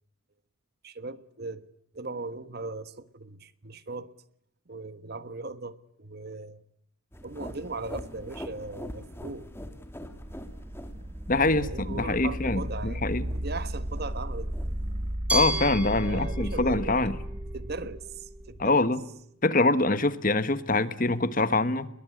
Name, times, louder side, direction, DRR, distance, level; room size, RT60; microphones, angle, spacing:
voice 1, 0.8-1.6 1.9-4.1 4.7-6.6 7.2-9.5 11.3-14.8 16.0-17.0 17.5-18.8, right 3 dB, 50° right, 14 dB, 1.3 m, -38 dB
sound 1, 7.1-15.2, equal, 10° left, 2.4 m, -44 dB
sound 2, 10.0-18.8, equal, 30° right, 1.6 m, -35 dB
voice 2, 11.3-13.3 15.3-17.2 18.6-19.0 19.4-21.9, left 2 dB, 40° left, 14 dB, 1.3 m, -24 dB
Glass, 15.3-18.2, right 1 dB, 5° right, 3.4 m, -33 dB
27.0 x 22.0 x 9.9 m, 0.73 s
head